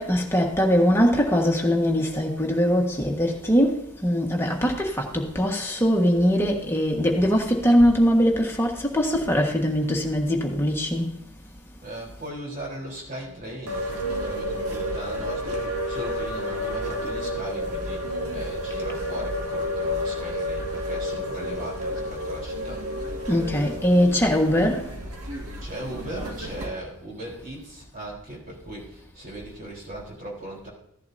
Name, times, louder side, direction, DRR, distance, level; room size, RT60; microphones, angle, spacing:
voice 1, 0.0-11.1 23.3-24.9, equal, 10° left, 1.5 m, -21 dB
voice 2, 11.8-22.8 25.6-30.7, right 1 dB, 40° right, 3.9 m, -38 dB
sound 1, 13.7-26.7, left 1 dB, 75° right, 2.0 m, -31 dB
16.0 x 11.0 x 2.8 m
head